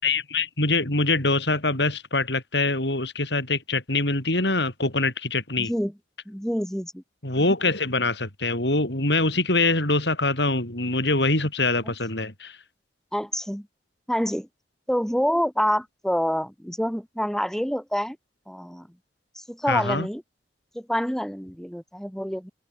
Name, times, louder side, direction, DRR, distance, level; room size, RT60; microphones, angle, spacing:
voice 1, 0.0-5.7 7.2-12.6 19.7-20.1, left 3 dB, 75° left, 6.7 m, -24 dB
voice 2, 5.6-5.9 6.3-7.0 13.1-13.7 14.1-14.5 14.9-18.2 18.5-18.9 19.4-20.2 20.7-22.5, equal, 5° left, 4.3 m, -27 dB
open air
head